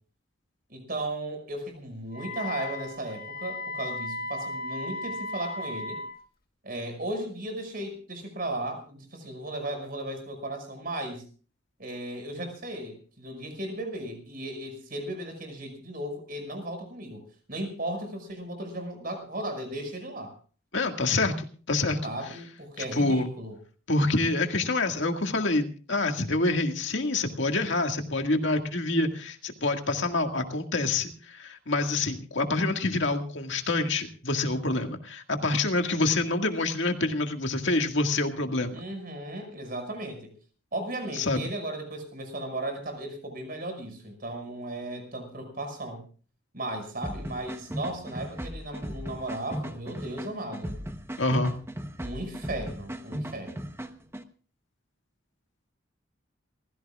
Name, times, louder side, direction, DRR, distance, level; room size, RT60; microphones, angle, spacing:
voice 1, 0.7-6.0 6.6-11.3 11.8-17.2 17.5-20.3 22.0-23.6 38.7-40.3 40.7-46.0 46.5-50.7 52.0-53.7, right 1 dB, 45° right, 6 dB, 5.7 m, -36 dB
Wind instrument woodwind instrument, 2.1-6.2, left 2 dB, 45° left, 1.5 m, -36 dB
voice 2, 20.7-22.0 22.8-23.3 23.9-38.8 41.2-41.4 51.2-51.5, left 2 dB, 60° left, 5 dB, 1.9 m, -27 dB
sound 1, 47.0-54.2, equal, 10° right, 0.9 m, -37 dB
28.5 x 16.0 x 2.4 m, 0.39 s
head